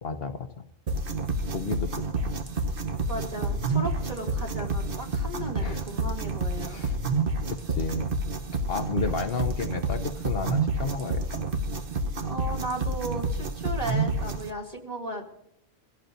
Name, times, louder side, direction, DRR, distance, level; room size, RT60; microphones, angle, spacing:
voice 1, 0.0-0.5 1.5-2.3 5.6-5.9 6.7-7.0 7.5-8.1 8.7-11.4, left 4 dB, 60° left, 7 dB, 1.1 m, -32 dB
sound 1, 0.9-14.5, right 2 dB, 55° right, 1.1 m, -29 dB
voice 2, 3.1-6.8 12.2-15.3, right 1 dB, 35° right, -2 dB, 2.8 m, -35 dB
28.0 x 16.0 x 2.7 m, 0.74 s
omnidirectional pair, 1.2 m